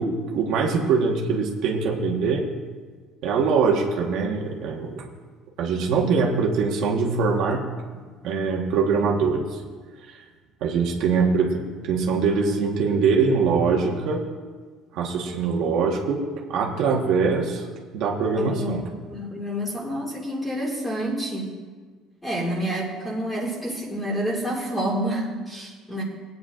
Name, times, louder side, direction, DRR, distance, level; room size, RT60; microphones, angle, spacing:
voice 1, 0.0-2.4 3.2-5.1 5.6-7.6 8.2-9.6 10.6-14.2 14.9-16.2 16.5-17.7 17.9-18.9, right 5 dB, 60° right, 0 dB, 1.3 m, -23 dB
voice 2, 18.4-21.6 22.2-26.0, equal, 10° left, -2 dB, 2.2 m, -28 dB
19.0 x 9.3 x 2.5 m, 1.5 s
cardioid pair, 160°, 0 cm